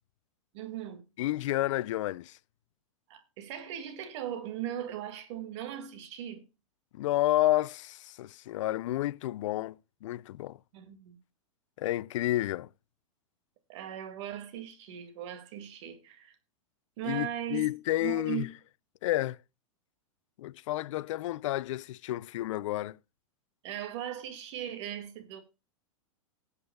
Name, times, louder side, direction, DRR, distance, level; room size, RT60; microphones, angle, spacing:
voice 1, 0.5-1.0 3.1-6.4 10.7-11.2 13.7-16.4 17.0-17.7 18.0-18.4 23.6-25.4, right 11 dB, 55° right, 2.0 m, -38 dB
voice 2, 1.2-2.4 7.0-9.8 10.0-10.6 11.8-12.7 17.0-18.5 19.0-19.4 20.4-23.0, left 15 dB, 65° left, 0.4 m, -30 dB
19.0 x 8.1 x 2.2 m
hypercardioid pair, 125°, 17 cm